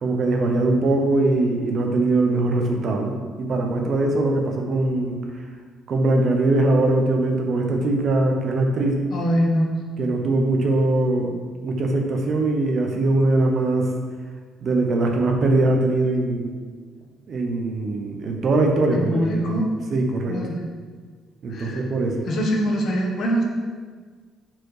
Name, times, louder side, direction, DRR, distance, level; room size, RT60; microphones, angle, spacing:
voice 1, 0.0-5.2 5.9-9.0 10.0-11.4 11.6-13.9 14.6-16.5 17.3-19.5 19.9-20.4 21.4-22.2, right 2 dB, 35° right, 2 dB, 0.9 m, -21 dB
voice 2, 9.1-9.7 18.9-19.6 20.3-20.6 21.5-21.8 22.3-23.4, equal, 40° left, 0 dB, 1.2 m, -23 dB
7.3 x 4.6 x 4.9 m, 1.5 s
cardioid pair, 180°, 0 cm